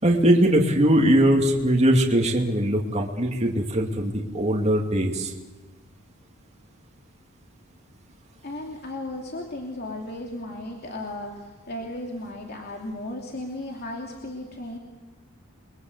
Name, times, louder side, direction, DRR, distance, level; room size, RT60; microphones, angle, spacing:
voice 1, 0.0-5.3, right 1 dB, 30° right, 0 dB, 2.6 m, -21 dB
voice 2, 8.4-14.8, left 1 dB, 50° left, 1 dB, 2.9 m, -35 dB
30.0 x 23.0 x 8.0 m, 1.2 s
head